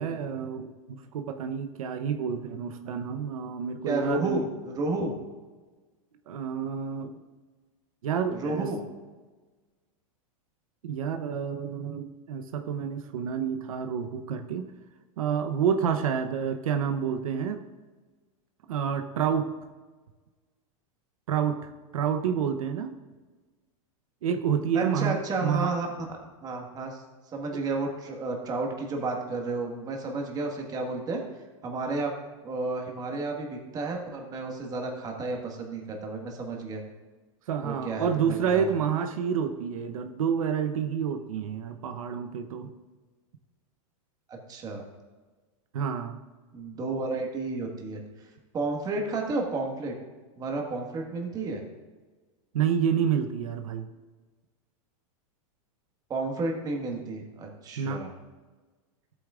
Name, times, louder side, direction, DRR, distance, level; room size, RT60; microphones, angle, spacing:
voice 1, 0.0-4.5 6.3-7.1 8.0-8.7 10.8-14.7 15.2-17.6 18.7-19.5 21.3-21.6 21.9-22.9 24.2-25.7 27.5-27.6 37.5-42.7 45.7-46.2 52.5-53.9 57.8-58.0, right 7 dB, 85° right, 7 dB, 0.8 m, -29 dB
voice 2, 3.9-5.1 8.3-8.8 24.7-25.9 26.4-27.0 27.3-31.2 31.6-32.1 32.4-36.8 37.6-38.1 38.4-38.7 44.3-44.8 46.5-48.0 48.5-49.9 50.4-51.6 56.1-58.1, right 3 dB, 20° right, 1 dB, 1.6 m, -31 dB
14.0 x 8.6 x 2.5 m, 1.3 s
supercardioid pair, 145°, 17 cm